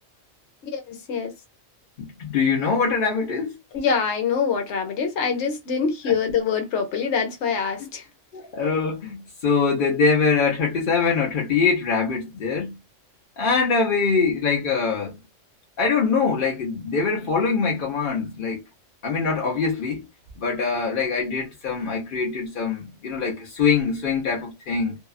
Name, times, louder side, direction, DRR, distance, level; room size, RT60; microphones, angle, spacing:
voice 1, 0.6-1.3 3.7-8.0, left 6 dB, 65° left, 1.1 m, -25 dB
voice 2, 2.0-3.6 6.1-6.2 8.3-12.7 13.4-15.1 15.8-18.6 19.0-20.0 20.4-25.0, left 5 dB, 50° left, 0.8 m, -23 dB
2.7 x 2.2 x 2.3 m
omnidirectional pair, 1.3 m